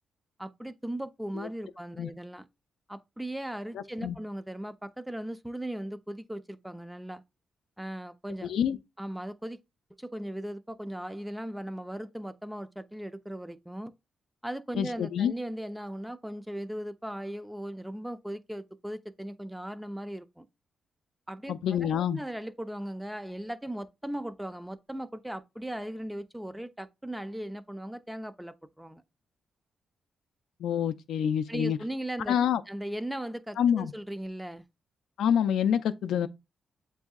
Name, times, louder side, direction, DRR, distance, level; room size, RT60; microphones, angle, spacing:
voice 1, 0.4-2.5 2.9-7.2 7.8-8.5 9.0-9.6 10.0-13.9 14.4-20.5 21.3-21.5 21.8-29.0 31.5-32.4 32.7-34.6, right 1 dB, 5° right, 0.4 m, -38 dB
voice 2, 3.7-4.2 8.4-8.8 14.8-15.3 21.5-22.2 30.6-31.8 32.3-32.6 33.6-33.9 35.2-36.3, left 9 dB, 90° left, 0.3 m, -27 dB
7.8 x 2.7 x 2.3 m
cardioid pair, 105°, 0 cm